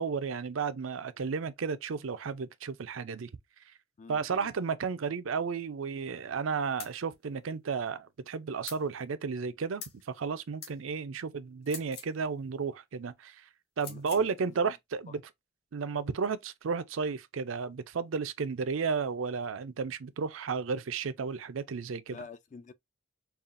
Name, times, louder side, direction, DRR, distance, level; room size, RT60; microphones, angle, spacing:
voice 1, 0.0-3.3 4.1-13.4 13.8-15.2 15.7-22.2, right 5 dB, 85° right, 0.5 m, -33 dB
voice 2, 4.0-4.5 13.9-14.3 14.6-14.7 22.1-22.7, left 4 dB, 35° left, 0.3 m, -48 dB
sound 1, 6.8-7.0 8.7-8.8 9.8-10.0 10.6-10.8 11.6-12.1 13.8-14.3, left 6 dB, 55° left, 1.9 m, -44 dB
5.5 x 2.4 x 2.5 m
head